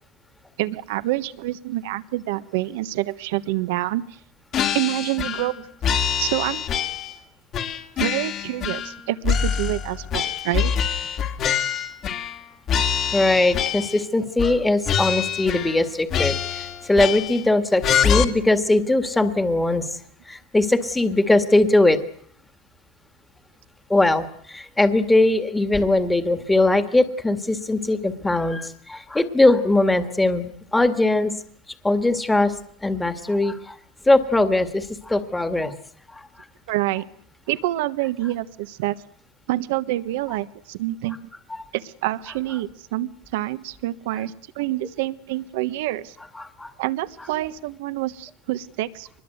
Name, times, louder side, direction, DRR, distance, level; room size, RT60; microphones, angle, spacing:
voice 1, 0.6-4.2 4.7-5.7 6.2-6.6 8.0-10.7 36.7-37.0 37.5-39.0 39.5-41.2 41.7-46.2 46.8-49.2, right 16 dB, 75° right, 13 dB, 1.3 m, -27 dB
sound 1, 4.5-5.5 5.8-7.2 7.5-9.0 9.2-12.4 12.7-14.1 14.4-14.6 14.9-15.8 16.1-17.5 17.8-18.2, left 8 dB, 45° left, 2.4 m, -25 dB
voice 2, 13.1-20.0 20.3-22.0 23.9-31.3 31.8-32.5 32.8-33.8 34.1-35.7 36.1-36.2 46.4-46.7, left 2 dB, 10° left, 8 dB, 1.9 m, -20 dB
23.5 x 21.0 x 8.1 m, 0.64 s
supercardioid pair, 115°, 0 cm